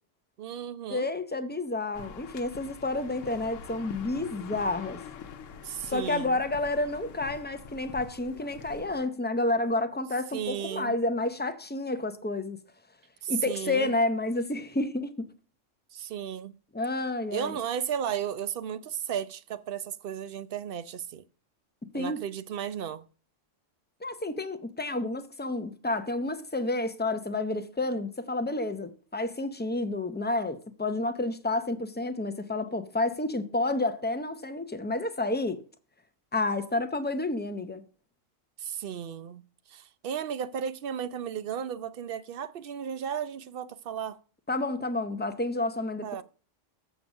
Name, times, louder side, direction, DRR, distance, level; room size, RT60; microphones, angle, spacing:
voice 1, 0.4-1.1 5.6-6.4 10.3-11.0 13.2-13.9 15.9-16.5 17.3-21.2 21.9-23.0 38.6-39.4 39.7-44.2 46.0-46.2, right 8 dB, 60° right, 0.7 m, -34 dB
voice 2, 0.9-5.0 5.9-12.6 13.3-15.2 16.7-17.6 21.9-22.2 24.0-35.6 36.3-37.8 44.5-46.2, left 2 dB, 15° left, 0.4 m, -30 dB
sound 1, 1.9-9.0, left 6 dB, 85° left, 1.1 m, -45 dB
7.7 x 5.1 x 6.2 m
omnidirectional pair, 1.3 m